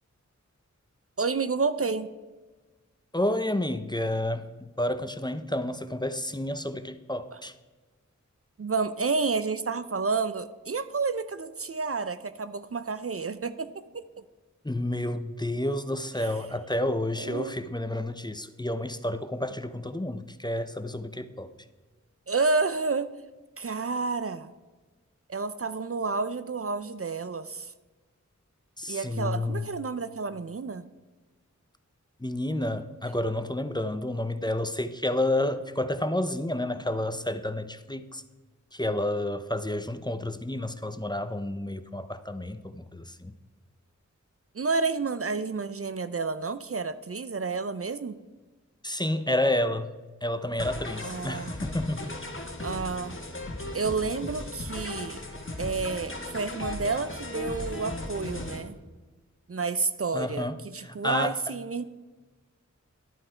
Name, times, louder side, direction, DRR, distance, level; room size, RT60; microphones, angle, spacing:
voice 1, 1.2-2.1 7.3-7.4 8.6-14.2 16.2-16.3 17.2-17.6 22.3-23.1 23.6-24.5 25.3-27.7 28.9-30.9 44.5-48.2 51.0-51.6 52.6-53.2 53.7-55.2 55.6-58.7 59.5-61.8, right 4 dB, 50° right, 13 dB, 0.5 m, -30 dB
voice 2, 3.1-7.5 14.6-21.5 28.8-29.7 32.2-38.2 38.7-43.3 48.8-49.9 50.2-52.2 60.1-60.6 60.8-61.4, left 1 dB, 15° left, 10 dB, 0.6 m, -30 dB
sound 1, 50.6-58.6, left 2 dB, 40° left, 1.4 m, -37 dB
11.0 x 8.6 x 4.4 m, 1.3 s
wide cardioid pair, 55°, 30 cm